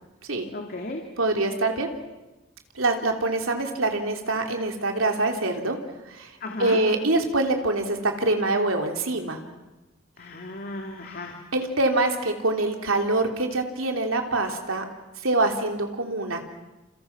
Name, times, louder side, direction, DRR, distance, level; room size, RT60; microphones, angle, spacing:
voice 1, 0.5-1.1 6.4-6.9 10.2-11.4, left 2 dB, 50° left, 2 dB, 2.5 m, -35 dB
voice 2, 1.2-1.9 2.7-5.8 6.1-6.3 6.6-9.4 11.5-14.8 15.2-16.5, right 2 dB, 80° right, 3 dB, 3.3 m, -25 dB
29.0 x 28.5 x 6.0 m, 1.1 s
head